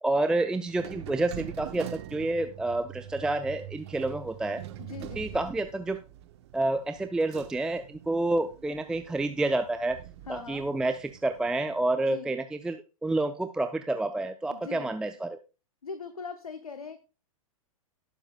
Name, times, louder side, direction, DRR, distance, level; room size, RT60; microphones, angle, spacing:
voice 1, 0.0-4.6 5.2-6.0 6.5-10.0 10.3-15.4, right 2 dB, 5° right, 8 dB, 0.4 m, -29 dB
sound 1, 0.7-11.9, right 12 dB, 50° right, 1.1 m, -44 dB
voice 2, 4.8-5.4 10.3-10.7 12.1-12.3 14.5-14.9 15.8-17.0, left 5 dB, 80° left, 9 dB, 1.0 m, -41 dB
19.0 x 7.1 x 2.3 m, 0.32 s
figure-of-eight pair, 110°, 18 cm